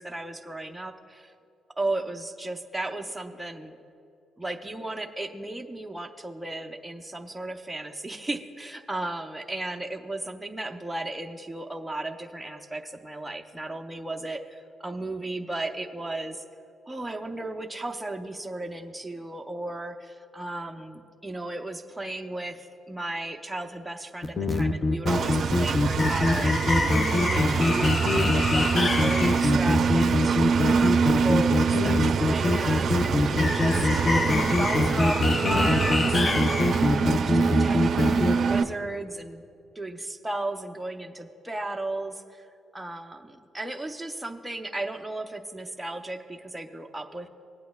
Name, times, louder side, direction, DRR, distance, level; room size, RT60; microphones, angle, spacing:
voice 1, 0.0-1.3 1.8-3.7 4.4-16.4 16.9-34.1 34.6-36.5 36.8-39.4 39.8-47.3, right 2 dB, 5° right, 3 dB, 0.6 m, -35 dB
sound 1, 24.2-38.3, left 2 dB, 35° left, 0.6 m, -24 dB
Engine, 25.1-38.6, right 5 dB, 55° right, 0.5 m, -25 dB
19.5 x 8.5 x 2.3 m, 2.6 s
cardioid pair, 90°, 0 cm